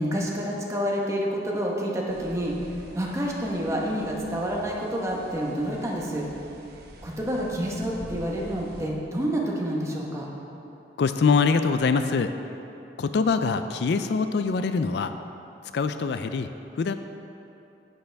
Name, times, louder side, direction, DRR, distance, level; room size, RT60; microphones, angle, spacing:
voice 1, 0.0-2.5 2.9-6.3 7.0-10.3, equal, 15° right, -3 dB, 1.2 m, -28 dB
sound 1, 2.1-8.9, right 1 dB, 60° right, 0.8 m, -46 dB
voice 2, 11.0-12.3 13.0-15.1 15.7-16.9, left 4 dB, 65° left, 9 dB, 0.4 m, -24 dB
11.0 x 8.2 x 3.4 m, 2.9 s
head